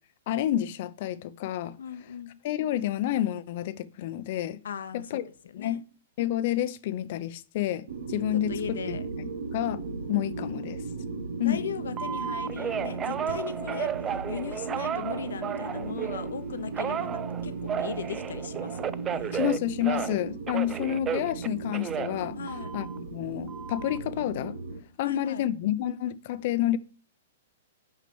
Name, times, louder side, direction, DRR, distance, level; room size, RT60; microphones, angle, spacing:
voice 1, 0.3-1.8 2.4-4.6 4.9-5.2 5.5-5.8 6.2-9.8 10.1-10.8 11.4-11.6 19.3-22.4 22.7-24.6 25.0-26.8, left 12 dB, 50° left, 0.7 m, -29 dB
voice 2, 1.8-2.4 4.6-5.1 5.4-5.8 8.5-9.0 11.4-19.4 22.4-22.7 25.0-25.4, left 8 dB, 85° left, 0.9 m, -38 dB
sound 1, 7.9-24.8, right 4 dB, 85° right, 1.4 m, -37 dB
Telephone, 12.0-16.3 16.8-20.2 20.5-23.0 23.5-24.0, right 8 dB, 20° right, 0.4 m, -33 dB
6.1 x 5.8 x 7.0 m
hypercardioid pair, 145°, 0 cm